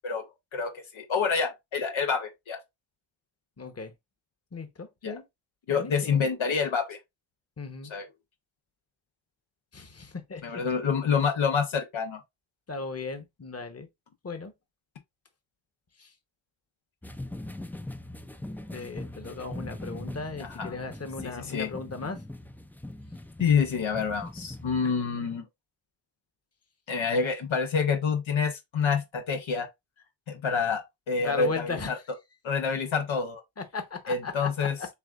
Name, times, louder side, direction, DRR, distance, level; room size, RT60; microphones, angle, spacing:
voice 1, 0.5-2.6 5.0-5.2 5.7-7.0 7.9-8.1 10.4-12.2 20.4-20.7 21.2-21.7 23.4-25.4 26.9-29.7 30.3-32.0 32.4-33.4 34.1-34.7, left 5 dB, 80° left, 0.8 m, -27 dB
voice 2, 3.6-3.9 4.5-5.2 5.7-6.2 7.6-7.9 9.7-10.6 12.7-13.9 14.2-14.5 16.0-16.1 18.7-22.2 31.2-31.9 33.6-34.9, left 4 dB, 30° left, 1.0 m, -37 dB
sound 1, 17.0-24.8, left 1 dB, 5° left, 0.4 m, -41 dB
6.8 x 2.4 x 2.4 m
cardioid pair, 40°, 47 cm